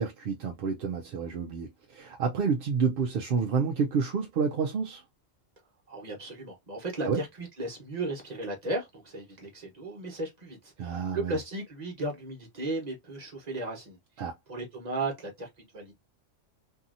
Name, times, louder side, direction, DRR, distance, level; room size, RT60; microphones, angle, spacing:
voice 1, 0.0-5.0 7.1-7.2 10.8-11.4 14.2-14.3, right 5 dB, 60° right, 0.6 m, -29 dB
voice 2, 5.9-15.9, right 2 dB, 35° right, 1.1 m, -36 dB
2.7 x 2.7 x 2.5 m
omnidirectional pair, 1.3 m